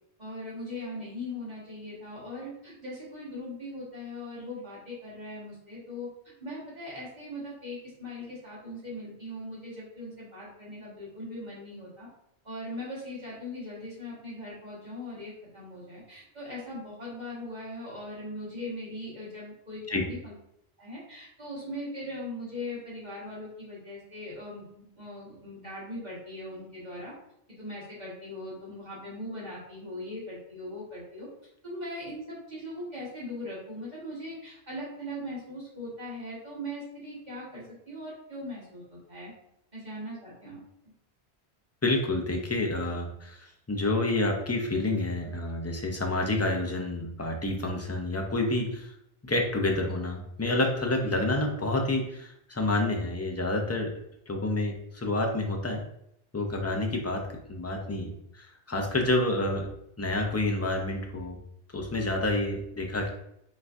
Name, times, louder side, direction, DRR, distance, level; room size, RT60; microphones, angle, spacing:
voice 1, 0.2-6.1 6.4-12.1 12.4-20.3 20.8-27.1 27.6-31.3 31.6-39.3 39.7-40.9, left 1 dB, 40° right, -8 dB, 1.8 m, -40 dB
voice 2, 41.8-49.0 49.2-53.9 54.3-55.8 56.3-59.7 60.0-61.4 61.7-63.1, left 2 dB, 20° left, 1 dB, 0.5 m, -29 dB
5.3 x 3.7 x 2.6 m, 0.76 s
omnidirectional pair, 1.1 m